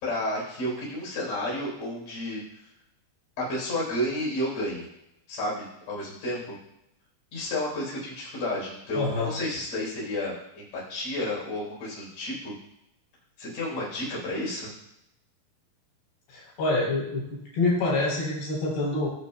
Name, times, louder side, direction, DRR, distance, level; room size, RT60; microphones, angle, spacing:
voice 1, 0.0-2.4 3.4-4.9 5.3-6.6 7.3-12.5 13.4-14.7, left 1 dB, 45° left, -6 dB, 4.9 m, -31 dB
voice 2, 8.9-9.3 16.3-19.1, left 2 dB, 85° left, -5 dB, 5.9 m, -26 dB
19.5 x 6.9 x 2.3 m, 0.82 s
omnidirectional pair, 4.6 m